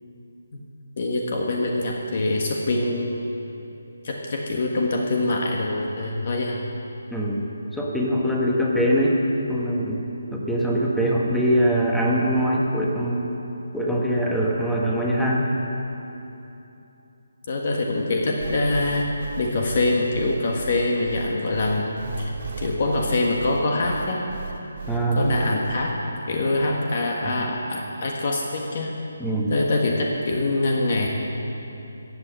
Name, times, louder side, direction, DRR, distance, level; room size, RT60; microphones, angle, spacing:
voice 1, 1.0-3.1 4.0-6.6 17.5-19.1 19.4-24.2 25.1-25.9 26.3-28.9 29.5-31.1, left 2 dB, 45° left, 0 dB, 1.4 m, -24 dB
voice 2, 7.1-7.4 7.7-9.2 9.5-10.0 10.3-13.2 13.7-15.4 24.9-25.3 29.2-29.5, equal, ahead, -4 dB, 1.2 m, -22 dB
sound 1, 18.4-25.7, right 5 dB, 40° right, 1.7 m, -35 dB
15.0 x 8.0 x 7.6 m, 2.9 s
hypercardioid pair, 170°, 0 cm